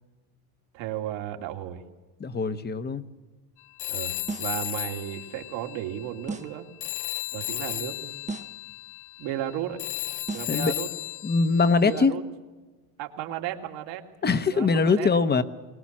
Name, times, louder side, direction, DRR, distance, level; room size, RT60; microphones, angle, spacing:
voice 1, 0.7-1.8 3.9-6.7 7.3-8.2 9.2-9.8 10.3-10.9 11.8-12.2 13.0-14.0 14.5-15.2, right 12 dB, 65° right, 4 dB, 2.6 m, -34 dB
voice 2, 2.2-3.0 10.5-10.7 11.2-12.1 14.2-15.4, left 4 dB, 20° left, 12 dB, 1.1 m, -22 dB
Telephone, 3.8-6.5 6.8-12.1, left 19 dB, 55° left, 0.8 m, -35 dB
sound 1, 4.3-4.7 6.3-6.7 8.3-8.7 10.3-10.7, right 3 dB, 15° right, 1.0 m, -36 dB
22.5 x 19.0 x 7.4 m, 1.2 s
supercardioid pair, 120°, 47 cm